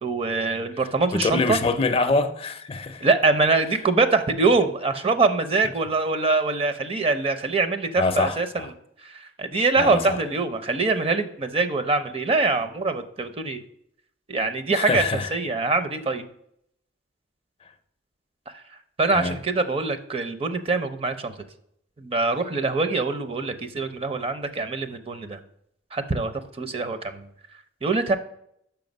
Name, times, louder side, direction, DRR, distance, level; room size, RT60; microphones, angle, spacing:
voice 1, 0.0-1.6 3.0-8.7 9.0-13.6 14.3-15.0 15.3-16.2 19.0-21.3 22.0-25.4 25.9-27.3 27.8-28.2, right 3 dB, 30° right, 0.5 m, -24 dB
voice 2, 1.1-3.1 8.0-8.7 9.8-10.2 14.7-15.3 19.1-19.4, left 3 dB, 30° left, 0.4 m, -25 dB
5.8 x 5.6 x 5.2 m
head